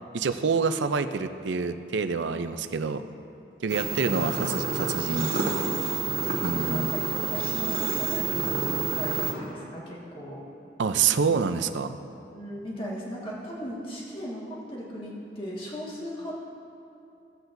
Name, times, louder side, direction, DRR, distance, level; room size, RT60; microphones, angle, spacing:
voice 1, 0.1-3.0 3.6-5.4 6.4-6.9 10.8-12.0, right 5 dB, 80° right, 9 dB, 0.5 m, -27 dB
voice 2, 2.3-3.1 5.1-5.8 6.6-10.4 12.3-16.3, equal, 30° left, -6 dB, 1.7 m, -38 dB
sound 1, 3.7-9.3, right 5 dB, 55° right, 1.3 m, -28 dB
17.0 x 8.0 x 2.6 m, 2.8 s
head